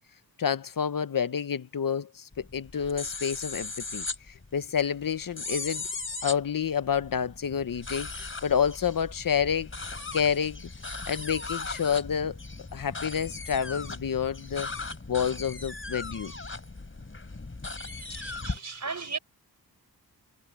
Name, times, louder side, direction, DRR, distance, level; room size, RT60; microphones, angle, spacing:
voice 1, 0.4-5.8 6.2-9.7 10.1-10.7 11.1-12.4 12.7-14.7 15.1-16.3, left 7 dB, 55° left, 0.9 m, -29 dB
sound 1, 2.3-18.6, left 3 dB, 30° left, 4.8 m, -38 dB
voice 2, 17.8-19.2, right 5 dB, 45° right, 5.5 m, -37 dB
wide cardioid pair, 105°, 39 cm